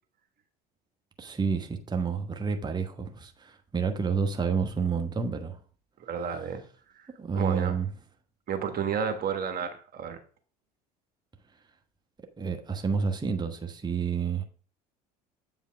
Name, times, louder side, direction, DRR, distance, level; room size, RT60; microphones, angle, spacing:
voice 1, 1.2-5.6 7.2-7.9 12.4-14.4, right 5 dB, 20° right, 1.3 m, -29 dB
voice 2, 6.0-6.6 6.9-7.8 8.5-10.2, right 7 dB, 45° right, 1.4 m, -32 dB
8.4 x 5.6 x 3.5 m
hypercardioid pair, 75°, 21 cm